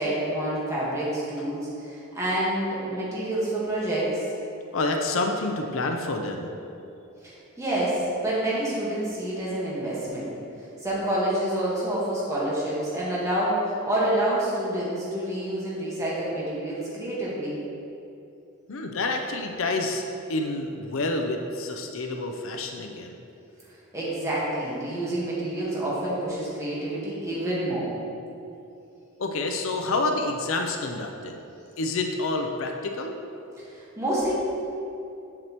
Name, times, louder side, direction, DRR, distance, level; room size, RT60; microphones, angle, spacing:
voice 1, 0.0-4.2 7.2-10.3 10.8-17.6 23.9-27.9 33.6-34.3, right 1 dB, 15° right, -8 dB, 1.5 m, -28 dB
voice 2, 4.7-6.5 18.7-20.0 20.3-23.1 29.2-31.4 31.8-33.2, left 2 dB, 70° left, 3 dB, 0.6 m, -28 dB
8.0 x 7.4 x 3.0 m, 2.8 s
head